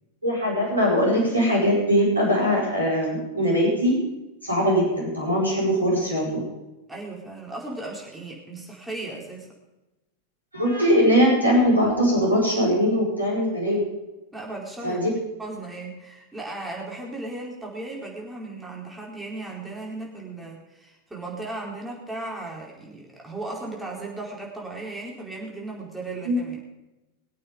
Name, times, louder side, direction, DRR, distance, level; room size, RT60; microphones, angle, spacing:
voice 1, 0.2-4.0 4.4-6.4 10.5-13.8 14.8-15.1 26.2-26.4, equal, 80° right, -4 dB, 5.0 m, -21 dB
voice 2, 6.9-9.5 14.3-15.0 15.4-26.6, right 2 dB, 10° right, -3 dB, 4.6 m, -36 dB
22.5 x 8.6 x 5.2 m, 1.0 s
figure-of-eight pair, 90°, 0 cm